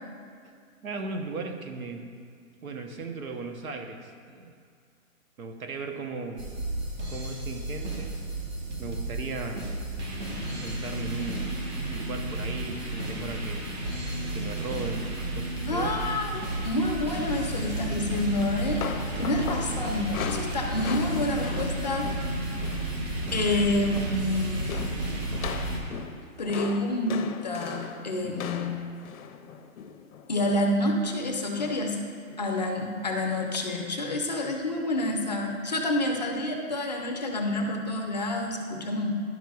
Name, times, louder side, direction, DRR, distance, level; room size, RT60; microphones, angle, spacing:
voice 1, 0.8-2.1 2.6-4.6 5.4-6.5 7.1-8.2 8.8-9.7 10.5-11.5 11.9-13.7 14.2-15.9 19.1-19.3 28.2-28.4, right 3 dB, 85° right, 5 dB, 1.0 m, -37 dB
sound 1, 6.4-25.8, right 1 dB, 50° right, 1.5 m, -32 dB
voice 2, 15.7-18.9 19.2-22.3 23.3-24.8 26.4-28.7 30.3-32.0 32.4-39.1, left 1 dB, 35° left, 2 dB, 0.4 m, -28 dB
sound 2, 18.4-23.0 23.2-23.5 23.8-24.3 24.7-30.7 31.6-32.0 32.3-32.5 33.5-33.6, left 7 dB, 80° left, 0.6 m, -39 dB
11.0 x 6.0 x 2.3 m, 2.2 s
hypercardioid pair, 160°, 41 cm